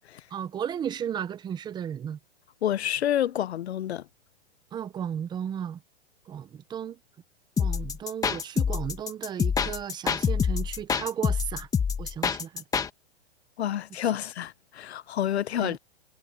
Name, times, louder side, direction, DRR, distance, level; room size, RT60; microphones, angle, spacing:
voice 1, 0.3-2.2 4.7-5.8 6.3-7.0 7.6-11.7 12.0-12.6 15.6-15.8, right 9 dB, 15° right, 1.0 m, -34 dB
voice 2, 2.6-4.1 13.6-15.8, left 11 dB, 75° left, 1.1 m, -28 dB
sound 1, 7.6-12.9, left 6 dB, 10° left, 1.5 m, -26 dB
hypercardioid pair, 150°, 32 cm